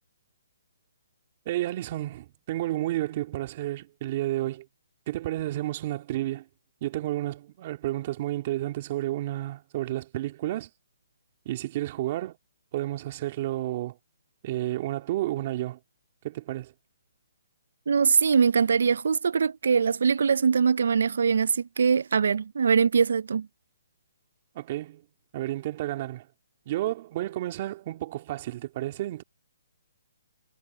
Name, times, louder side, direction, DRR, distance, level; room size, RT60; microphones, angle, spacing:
voice 1, 1.5-4.7 5.1-6.5 6.8-10.7 11.5-12.4 12.7-14.0 14.4-15.8 16.2-16.7 24.5-25.0 25.3-26.3 26.7-29.2, right 15 dB, 35° right, 2.3 m, -31 dB
voice 2, 17.9-23.5, right 6 dB, 70° right, 0.6 m, -22 dB
hypercardioid pair, 155°, 0 cm